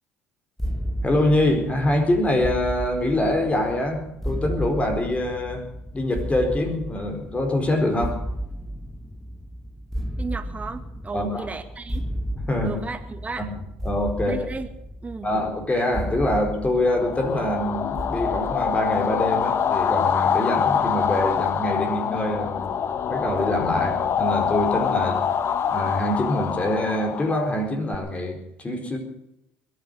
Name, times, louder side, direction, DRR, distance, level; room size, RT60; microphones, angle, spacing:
sound 1, 0.6-19.5, equal, 5° left, 1.4 m, -34 dB
voice 1, 1.0-5.6 5.9-8.2 11.1-11.5 12.5-12.8 13.8-14.4 15.2-22.7 23.1-25.3 25.7-29.0, left 1 dB, 25° left, 5 dB, 4.5 m, -24 dB
voice 2, 10.2-12.1 12.6-13.5 14.3-14.7 15.0-15.3, right 4 dB, 25° right, 8 dB, 2.1 m, -34 dB
sound 2, 16.8-28.0, left 8 dB, 50° left, 1.1 m, -25 dB
21.5 x 9.5 x 6.7 m, 0.84 s
hypercardioid pair, 75°, 6 cm